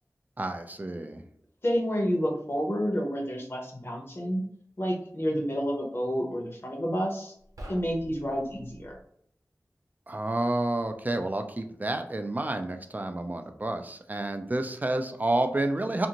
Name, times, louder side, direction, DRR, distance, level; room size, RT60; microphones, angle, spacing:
voice 1, 0.4-1.2 10.1-16.1, right 2 dB, 30° right, 7 dB, 0.3 m, -30 dB
voice 2, 1.6-4.4 4.8-7.3 7.7-9.0, equal, 45° left, 0 dB, 0.8 m, -29 dB
sound 1, 7.4-9.0, equal, 85° right, 0.5 m, -46 dB
2.5 x 2.5 x 2.8 m, 0.65 s
wide cardioid pair, 65°, 6 cm